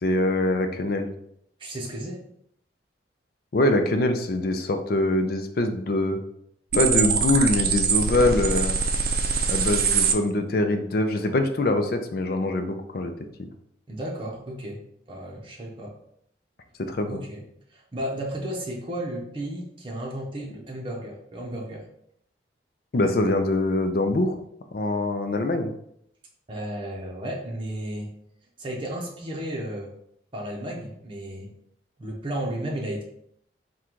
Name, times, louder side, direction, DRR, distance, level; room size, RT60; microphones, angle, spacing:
voice 1, 0.0-1.1 3.5-6.2 6.7-8.8 9.5-13.1 13.4-13.5 16.8-17.2 22.9-24.3 24.7-25.7, left 2 dB, 55° left, 6 dB, 0.5 m, -23 dB
voice 2, 1.6-2.2 13.9-14.8 15.1-15.9 17.1-17.4 17.7-21.8 26.5-28.1 28.6-29.9 30.3-31.5 32.0-33.0, right 1 dB, 30° right, -2 dB, 0.7 m, -33 dB
sound 1, 6.7-10.1, right 5 dB, 50° right, 0.4 m, -23 dB
3.8 x 2.3 x 4.5 m, 0.73 s
head